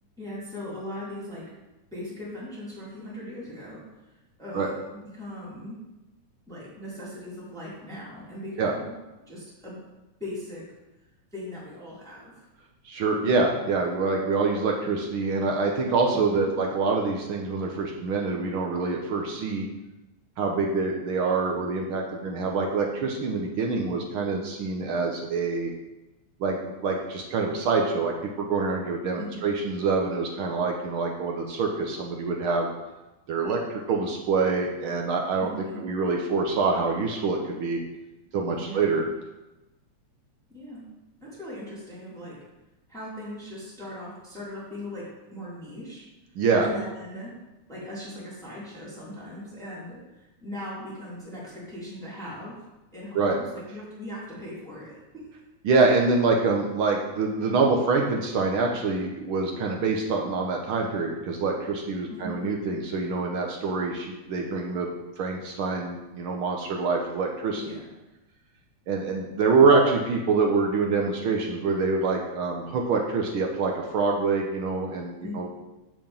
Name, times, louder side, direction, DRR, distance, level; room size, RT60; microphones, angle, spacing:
voice 1, 0.2-1.4 1.9-3.8 4.1-5.8 6.5-9.8 10.2-10.6 11.3-12.4 16.1-16.4 29.1-29.5 35.4-35.8 38.6-38.8 40.5-40.8 41.2-42.4 42.9-46.0 46.6-47.3 47.7-55.2 62.1-62.5 67.5-67.8 75.2-75.5, left 1 dB, ahead, -7 dB, 2.6 m, -39 dB
voice 2, 12.8-19.7 20.4-25.7 26.4-32.7 33.3-35.5 35.8-37.8 38.3-39.0 46.3-46.7 53.1-53.4 55.6-64.9 65.2-67.6 68.9-75.5, right 4 dB, 70° right, 1 dB, 1.2 m, -25 dB
7.8 x 4.8 x 7.2 m, 1.0 s
omnidirectional pair, 3.4 m